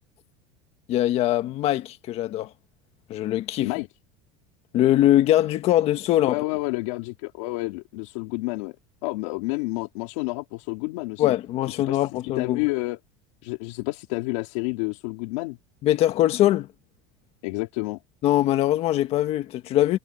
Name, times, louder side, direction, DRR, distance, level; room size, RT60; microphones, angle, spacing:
voice 1, 0.9-2.5 3.1-3.7 4.7-6.4 11.2-12.6 15.8-16.7 18.2-20.0, left 13 dB, 35° left, 1.6 m, -22 dB
voice 2, 6.3-8.8 9.0-11.3 11.7-12.0 12.4-13.0 13.4-15.6 17.4-18.0, left 23 dB, 70° left, 3.0 m, -29 dB
cardioid pair, 170°, 17 cm